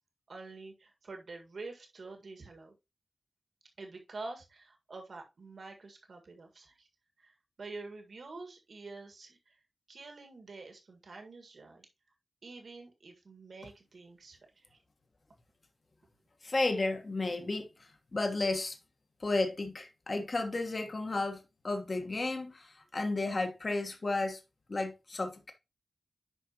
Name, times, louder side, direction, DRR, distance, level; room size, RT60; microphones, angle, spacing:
voice 1, 0.3-2.7 3.8-6.9 7.2-9.6 9.9-11.9 12.4-14.8, right 3 dB, 65° right, 1.7 m, -47 dB
voice 2, 16.4-17.7 18.1-18.8 19.2-24.4 24.7-25.5, left 2 dB, 40° left, 1.3 m, -33 dB
10.0 x 4.9 x 2.9 m
wide cardioid pair, 120°, 0 cm